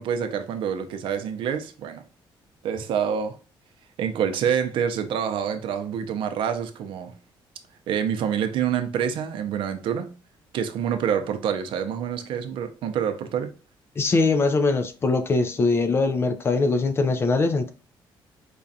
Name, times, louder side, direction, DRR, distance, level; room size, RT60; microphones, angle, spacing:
voice 1, 0.0-2.0 2.6-3.4 4.0-7.1 7.9-10.1 10.5-13.5, right 8 dB, 75° right, 0.5 m, -27 dB
voice 2, 14.0-17.7, left 3 dB, 30° left, 0.4 m, -22 dB
4.9 x 2.3 x 2.7 m
cardioid pair, 150°, 9 cm